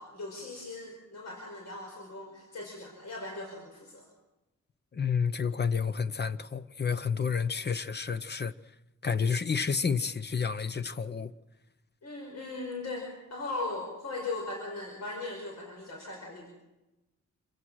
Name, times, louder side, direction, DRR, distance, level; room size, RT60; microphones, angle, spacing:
voice 1, 0.0-4.1 12.0-16.5, left 3 dB, 60° left, 5.3 m, -39 dB
voice 2, 4.9-8.5 9.0-11.3, left 6 dB, 35° left, 0.7 m, -30 dB
27.0 x 16.0 x 6.3 m
wide cardioid pair, 160°, 30 cm